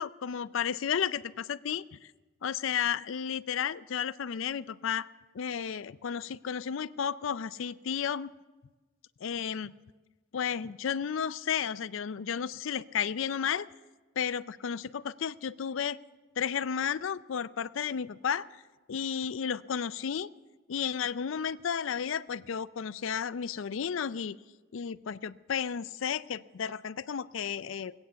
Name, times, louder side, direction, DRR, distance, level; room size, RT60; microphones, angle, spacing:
voice 1, 0.0-2.0 2.4-5.1 5.3-8.3 9.2-9.7 10.3-13.7 14.2-16.0 16.4-18.5 18.9-20.3 20.7-24.4 24.7-27.9, left 7 dB, 70° left, 16 dB, 0.4 m, -33 dB
20.5 x 8.8 x 6.9 m, 1.2 s
head